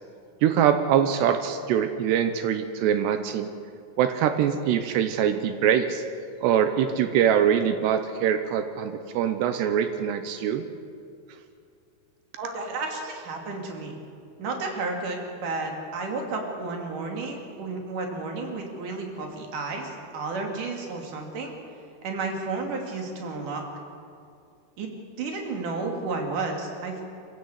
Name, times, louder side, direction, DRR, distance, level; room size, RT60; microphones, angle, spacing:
voice 1, 0.4-3.5 4.0-6.0 6.4-10.6, right 9 dB, 80° right, 9 dB, 2.9 m, -23 dB
voice 2, 12.4-14.0 14.4-21.5 22.0-23.7 24.8-24.9 25.2-27.0, right 3 dB, 50° right, 2 dB, 4.1 m, -32 dB
26.0 x 16.0 x 8.1 m, 2.4 s
omnidirectional pair, 5.0 m